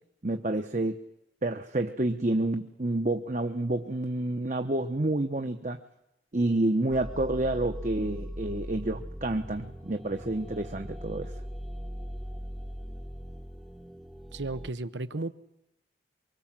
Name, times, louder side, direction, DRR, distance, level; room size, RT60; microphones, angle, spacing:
voice 1, 0.2-1.0 1.4-5.8 6.3-11.3, right 2 dB, 45° right, 6 dB, 1.0 m, -29 dB
sound 1, 6.9-14.7, equal, ahead, 1.0 m, -40 dB
voice 2, 14.3-15.3, right 2 dB, 90° right, 14 dB, 1.0 m, -34 dB
24.0 x 24.0 x 7.5 m, 0.87 s
head